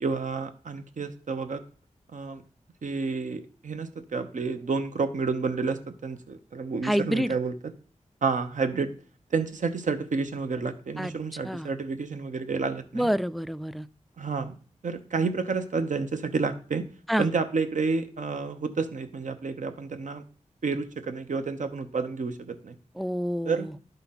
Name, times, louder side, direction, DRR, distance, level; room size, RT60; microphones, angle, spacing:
voice 1, 0.0-1.6 2.1-2.4 2.8-7.5 8.2-8.9 9.3-13.1 14.2-14.5 14.8-16.9 17.2-20.2 20.6-22.8 23.4-23.7, right 4 dB, 75° right, 8 dB, 0.9 m, -30 dB
voice 2, 6.8-7.3 11.0-11.1 11.4-11.7 12.9-13.9 17.1-17.3 23.0-23.7, equal, ahead, 16 dB, 0.4 m, -27 dB
11.5 x 4.0 x 5.7 m, 0.41 s
wide cardioid pair, 75°, 13 cm